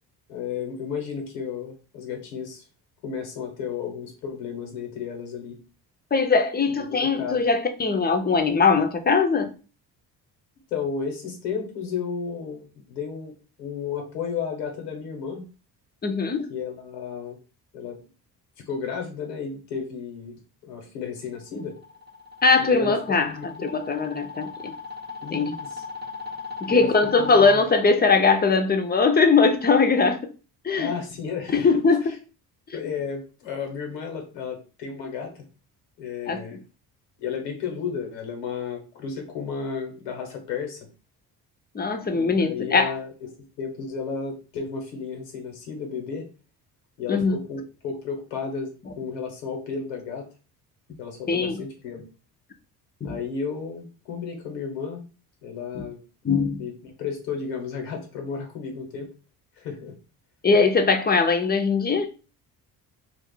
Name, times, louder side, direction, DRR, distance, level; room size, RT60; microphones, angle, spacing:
voice 1, 0.3-2.6 3.0-5.6 6.8-7.4 10.7-15.4 16.5-17.4 17.7-18.0 18.6-21.8 22.6-23.7 25.2-25.8 26.7-27.7 30.8-31.7 32.0-32.2 32.7-35.3 36.0-36.6 37.2-40.8 42.1-43.1 43.6-46.3 47.0-50.3 51.0-52.0 53.0-55.0 55.4-56.0 56.6-59.1 59.6-59.9, left 6 dB, 85° left, 1.0 m, -33 dB
voice 2, 6.1-9.5 16.0-16.5 22.4-23.3 23.6-24.7 25.3-25.5 26.6-30.2 30.6-30.9 31.5-32.0 32.7-32.8 36.3-36.4 41.7-42.9 47.1-47.4 51.3-51.6 53.0-53.2 55.7-55.8 56.2-56.6 60.4-62.1, left 4 dB, 20° left, 0.6 m, -21 dB
sound 1, 21.4-27.6, left 4 dB, 20° right, 0.7 m, -37 dB
2.5 x 2.4 x 3.7 m
hypercardioid pair, 50°, 48 cm